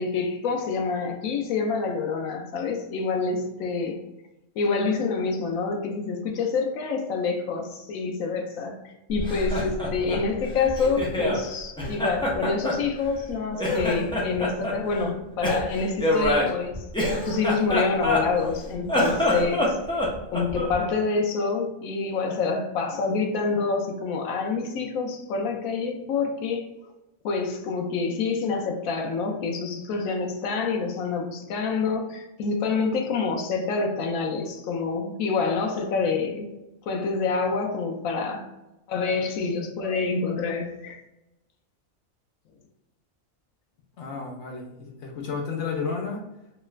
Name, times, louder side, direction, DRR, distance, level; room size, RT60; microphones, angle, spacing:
voice 1, 0.0-4.0 4.6-16.7 17.2-19.7 20.3-26.6 27.2-36.5 36.9-38.5 38.9-41.0, left 4 dB, 85° left, 3 dB, 1.0 m, -27 dB
Laughter, 9.1-11.4 11.8-13.3 13.6-14.8 15.4-18.5 18.8-20.8, left 1 dB, 5° left, 0.4 m, -26 dB
voice 2, 44.0-46.2, left 5 dB, 65° left, 1 dB, 0.9 m, -32 dB
3.0 x 2.3 x 3.1 m, 0.95 s
omnidirectional pair, 1.4 m